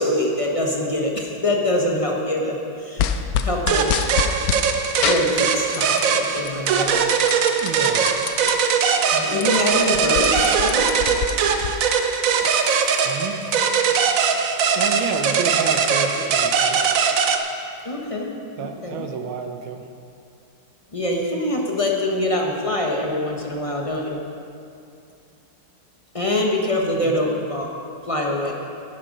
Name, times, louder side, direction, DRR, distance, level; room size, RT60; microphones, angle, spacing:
voice 1, 0.0-3.1 3.4-4.0 5.0-7.0 9.1-10.9 17.8-19.1 20.9-24.2 26.1-27.7 28.1-28.5, left 1 dB, 30° left, -1 dB, 0.6 m, -24 dB
sound 1, 3.0-4.6 5.0-6.2 6.5-8.5 9.0-9.1 9.3-11.7, left 8 dB, 85° left, 0.8 m, -26 dB
sound 2, 3.7-17.4, right 6 dB, 65° right, 0.8 m, -20 dB
voice 2, 7.6-8.3 12.4-14.4 14.7-17.1 18.6-19.9 27.0-27.1, right 6 dB, 80° right, 6 dB, 1.7 m, -31 dB
11.0 x 9.9 x 5.3 m, 2.5 s
omnidirectional pair, 2.2 m